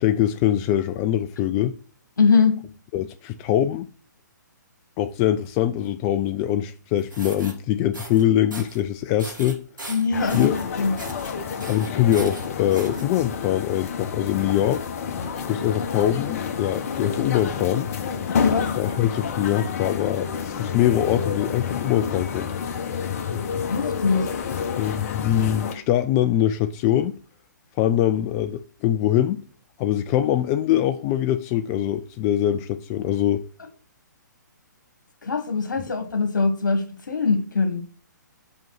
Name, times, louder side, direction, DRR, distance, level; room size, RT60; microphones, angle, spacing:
voice 1, 0.0-1.8 2.9-3.9 5.0-9.6 10.3-10.6 11.7-14.8 15.5-17.9 18.7-20.3 20.6-22.5 24.8-27.2 27.8-29.4 29.8-33.4, left 11 dB, 25° left, 0.4 m, -23 dB
voice 2, 2.2-2.6 9.9-10.9 15.2-15.3 18.3-18.7 23.7-24.3 35.2-37.9, left 4 dB, 75° left, 1.8 m, -22 dB
sound 1, 7.0-7.5 7.9-8.2 8.5-8.8 9.2-10.6 11.0-11.3 11.6-13.0, right 2 dB, 85° right, 2.6 m, -38 dB
sound 2, 10.1-25.7, left 6 dB, 45° left, 1.3 m, -29 dB
5.5 x 5.3 x 6.5 m
figure-of-eight pair, 130°, 10 cm